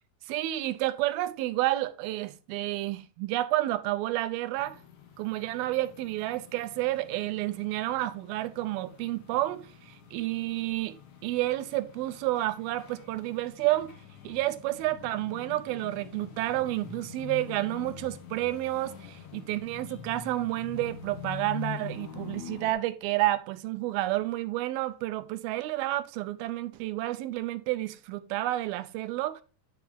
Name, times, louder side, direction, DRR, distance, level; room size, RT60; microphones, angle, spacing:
voice 1, 0.3-4.8 5.2-10.9 11.2-13.9 14.2-29.4, right 16 dB, 85° right, 2.5 m, -30 dB
sound 1, 4.6-22.7, left 8 dB, 60° left, 2.4 m, -45 dB
10.5 x 4.7 x 3.5 m
omnidirectional pair, 4.2 m